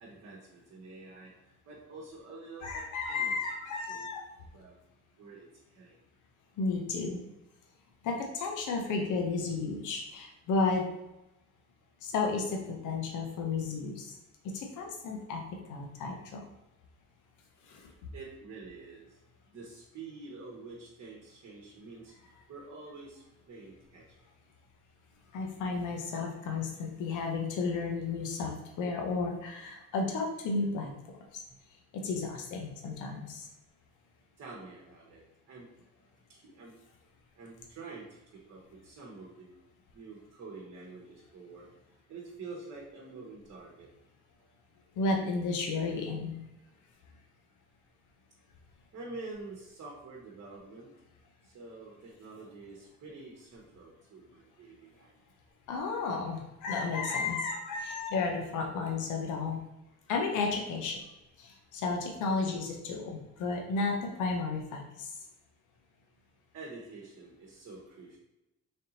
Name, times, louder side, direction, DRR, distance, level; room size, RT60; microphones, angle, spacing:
voice 1, 0.0-2.8 3.1-3.3 3.9-4.1 4.5-4.8 5.2-6.0 18.1-19.2 19.5-22.1 22.5-24.0 34.4-35.2 35.5-35.7 36.3-36.7 37.4-39.5 39.9-41.7 42.1-43.9 48.9-50.9 51.4-55.1 66.5-68.2, right 3 dB, 55° right, -3 dB, 1.0 m, -47 dB
voice 2, 2.6-4.2 6.6-7.2 8.0-10.9 12.0-14.1 14.5-15.4 15.7-16.4 17.6-17.9 25.3-30.9 31.9-33.5 45.0-46.4 55.7-59.6 60.1-61.0 61.4-65.1, left 4 dB, 80° left, 2 dB, 0.7 m, -33 dB
3.4 x 2.7 x 3.9 m, 0.95 s
cardioid pair, 90°, 30 cm